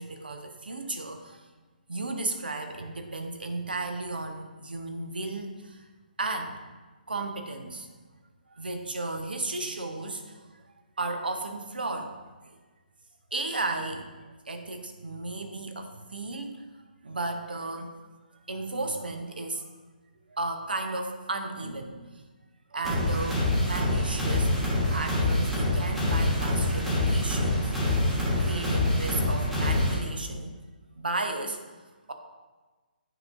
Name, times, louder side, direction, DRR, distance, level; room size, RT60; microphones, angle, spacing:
voice 1, 0.0-1.5 1.9-5.8 6.2-6.6 7.1-7.9 8.5-12.1 12.5-12.6 13.3-16.6 17.0-17.9 18.5-19.7 20.3-22.0 22.7-24.5 24.9-27.7 28.4-30.6 31.0-31.6, right 2 dB, 75° right, 5 dB, 0.8 m, -34 dB
sound 1, 22.8-30.0, left 1 dB, 5° right, 1.2 m, -26 dB
9.1 x 4.7 x 2.5 m, 1.3 s
figure-of-eight pair, 135°, 5 cm